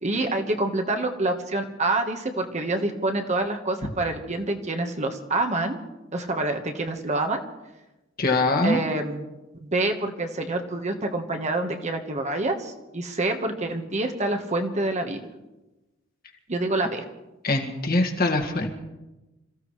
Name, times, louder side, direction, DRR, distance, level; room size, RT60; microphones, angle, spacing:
voice 1, 0.0-5.8 6.1-7.4 8.6-9.2 9.5-15.2 16.5-17.0, right 2 dB, 35° right, 4 dB, 1.4 m, -27 dB
voice 2, 8.2-8.8 17.4-18.7, left 2 dB, 50° left, 3 dB, 2.1 m, -23 dB
27.0 x 15.0 x 3.3 m, 1.1 s
head